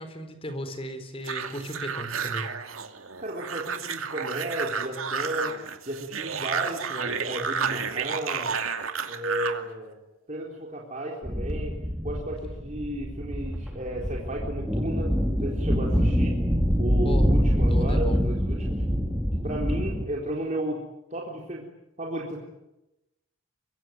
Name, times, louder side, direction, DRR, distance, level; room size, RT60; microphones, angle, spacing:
voice 1, 0.0-2.5 17.0-17.3 17.7-18.2, equal, 25° left, 8 dB, 4.3 m, -36 dB
sound 1, 1.2-9.6, right 6 dB, 85° right, 2.5 m, -31 dB
voice 2, 3.2-5.5 5.9-8.6 9.1-10.0 10.3-11.8 12.0-16.4 16.8-18.8 19.3-20.8 21.1-21.6 22.0-22.4, right 1 dB, 35° right, -2 dB, 3.9 m, -33 dB
sound 2, 11.2-20.1, equal, 5° right, 3.2 m, -25 dB
24.5 x 23.5 x 9.3 m, 0.93 s
head